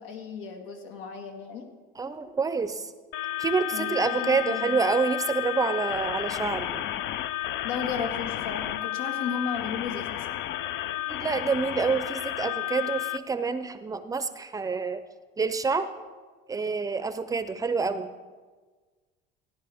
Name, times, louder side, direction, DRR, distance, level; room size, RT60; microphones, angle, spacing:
voice 1, 0.0-1.7 3.7-4.8 7.6-10.3, left 6 dB, 90° left, 4 dB, 1.8 m, -34 dB
voice 2, 2.0-2.9 3.4-6.8 11.1-15.0 15.4-15.9 16.5-18.1, right 4 dB, 15° right, 11 dB, 0.5 m, -27 dB
sound 1, 3.1-13.2, left 14 dB, 65° left, 0.5 m, -32 dB
16.0 x 10.5 x 3.5 m, 1.4 s
cardioid pair, 130°, 20 cm